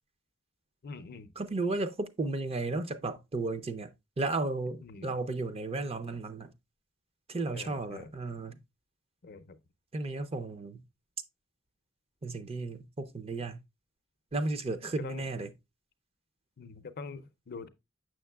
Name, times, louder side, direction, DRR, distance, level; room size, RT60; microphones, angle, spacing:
voice 1, 0.8-1.3 4.8-5.1 7.5-8.1 9.2-9.6 15.0-15.2 16.6-17.7, left 4 dB, 50° left, 0.5 m, -44 dB
voice 2, 1.4-6.5 7.3-8.6 9.9-10.8 12.2-13.6 14.3-15.5, right 3 dB, 30° right, 0.5 m, -34 dB
6.5 x 6.4 x 2.2 m
head